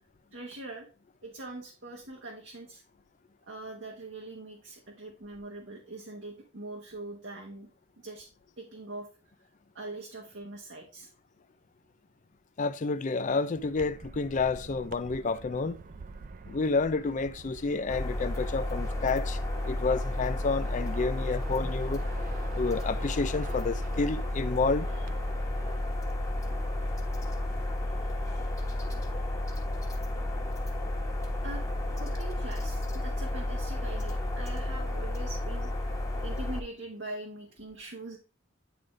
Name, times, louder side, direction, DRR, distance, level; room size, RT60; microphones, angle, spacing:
voice 1, 0.3-0.9 1.2-2.8 3.4-7.7 8.0-8.3 8.6-9.1 9.7-11.1 17.6-17.7 22.8-22.9 28.0-28.4 31.4-31.6 31.9-35.7 36.2-38.2, right 2 dB, 65° right, 1.1 m, -42 dB
voice 2, 12.6-15.8 16.5-19.4 19.7-22.0 22.5-24.9, left 4 dB, 35° left, 0.4 m, -29 dB
sound 1, 13.6-27.7, right 4 dB, 40° right, 0.4 m, -48 dB
sound 2, 17.9-36.6, left 1 dB, 15° left, 1.3 m, -32 dB
9.2 x 3.8 x 3.2 m
head